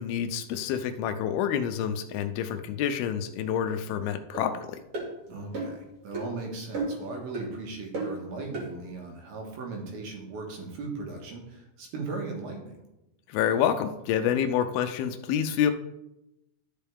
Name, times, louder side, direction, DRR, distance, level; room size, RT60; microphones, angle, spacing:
voice 1, 0.0-4.8 13.3-15.7, left 9 dB, 80° left, 9 dB, 2.5 m, -28 dB
sound 1, 4.3-4.5 4.9-5.1 5.5-5.8 6.1-6.3 6.7-7.1 7.3-7.5 7.9-8.2 8.5-8.7, right 2 dB, 40° right, 2.8 m, -32 dB
voice 2, 5.3-12.8, right 3 dB, 70° right, 1 dB, 3.3 m, -38 dB
12.5 x 5.6 x 3.6 m, 0.91 s
omnidirectional pair, 4.6 m